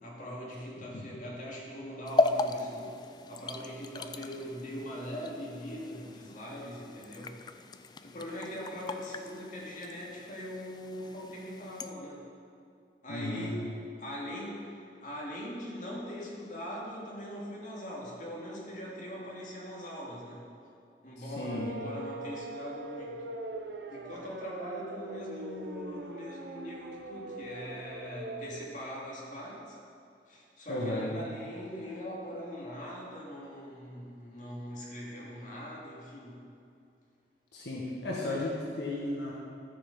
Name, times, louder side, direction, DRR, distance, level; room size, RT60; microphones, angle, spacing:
voice 1, 0.0-7.5 8.0-12.2 13.0-13.7 14.0-20.5 21.0-23.2 23.9-29.8 30.3-36.4, equal, 45° left, -5 dB, 2.3 m, -41 dB
sound 1, 2.1-11.9, left 3 dB, 25° left, 0.3 m, -36 dB
voice 2, 13.1-13.5 21.2-21.7 30.7-31.2 37.5-39.3, left 1 dB, 75° left, -4 dB, 1.5 m, -34 dB
sound 2, 21.5-28.7, right 2 dB, 75° right, 0.7 m, -42 dB
13.0 x 6.9 x 5.4 m, 2.5 s
head